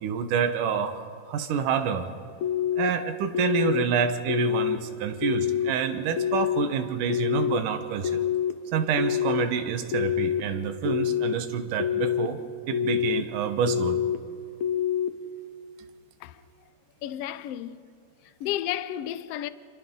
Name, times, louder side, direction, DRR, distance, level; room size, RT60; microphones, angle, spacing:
voice 1, 0.0-2.1 2.8-8.2 8.7-12.4 12.7-14.0, right 7 dB, 90° right, 2.7 m, -28 dB
sound 1, 2.4-2.9 3.3-3.8 4.3-4.8 5.2-5.7 6.2-6.7 7.1-7.6 8.0-8.5 9.0-9.5 9.9-10.4 10.8-11.3 11.8-12.3 12.7-13.2 13.7-14.2 14.6-15.1, left 10 dB, 70° left, 2.1 m, -26 dB
voice 2, 17.0-17.8 18.2-19.5, left 12 dB, 90° left, 1.3 m, -32 dB
29.0 x 27.0 x 3.8 m
omnidirectional pair, 3.6 m